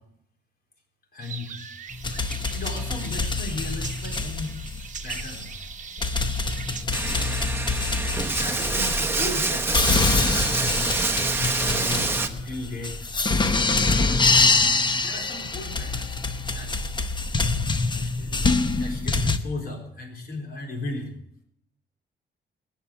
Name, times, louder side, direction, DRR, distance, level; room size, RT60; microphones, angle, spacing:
voice 1, 1.1-1.6 2.1-2.3 2.5-4.7 5.0-5.5 8.2-11.0 11.3-13.0 13.9-16.7 17.9-18.4 18.8-21.1, left 2 dB, 55° left, 2 dB, 4.1 m, -36 dB
sound 1, 1.2-6.9, right 7 dB, 45° right, 1.1 m, -40 dB
sound 2, 1.9-19.4, left 3 dB, 25° left, 0.9 m, -25 dB
Bathtub (filling or washing), 6.9-12.3, right 3 dB, 10° right, 1.0 m, -26 dB
19.5 x 7.5 x 7.7 m, 0.74 s
cardioid pair, 130°, 18 cm